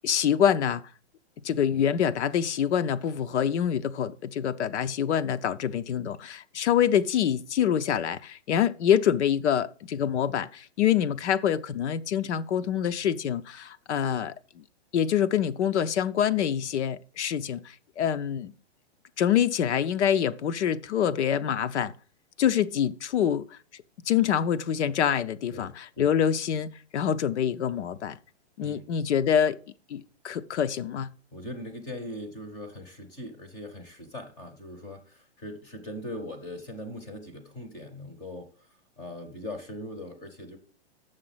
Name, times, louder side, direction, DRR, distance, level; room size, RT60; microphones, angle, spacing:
voice 1, 0.0-0.8 1.4-14.3 14.9-18.5 19.2-21.9 22.4-23.6 24.1-28.2 28.6-29.6 29.9-31.1, left 9 dB, 85° left, 0.7 m, -26 dB
voice 2, 25.5-26.1 28.6-28.8 31.3-38.7 39.0-40.6, left 1 dB, 10° left, 0.6 m, -40 dB
7.0 x 6.5 x 5.6 m
hypercardioid pair, 175°, 34 cm